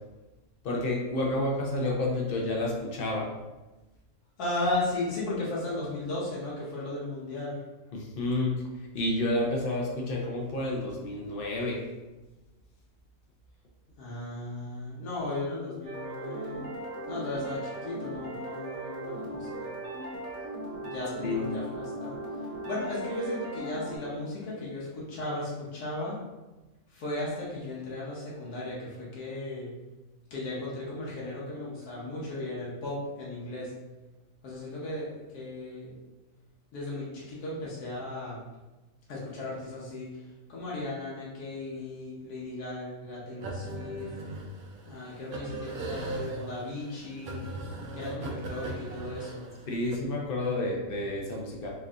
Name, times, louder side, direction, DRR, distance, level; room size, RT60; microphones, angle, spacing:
voice 1, 0.6-3.3 7.9-8.5 8.9-11.8 21.2-21.5 49.7-51.7, left 1 dB, 50° left, -1 dB, 0.7 m, -30 dB
voice 2, 4.4-7.6 14.0-16.7 17.1-19.7 20.8-26.2 26.9-29.8 30.3-33.7 34.4-35.9 36.7-38.4 39.1-40.2 40.5-44.1 44.9-47.4 47.9-49.5, left 2 dB, 85° left, -6 dB, 1.4 m, -36 dB
sound 1, 15.8-24.0, right 1 dB, 65° right, 1.3 m, -38 dB
sound 2, 43.4-50.0, right 2 dB, 80° right, 1.1 m, -39 dB
4.5 x 2.6 x 2.4 m, 1.1 s
omnidirectional pair, 1.6 m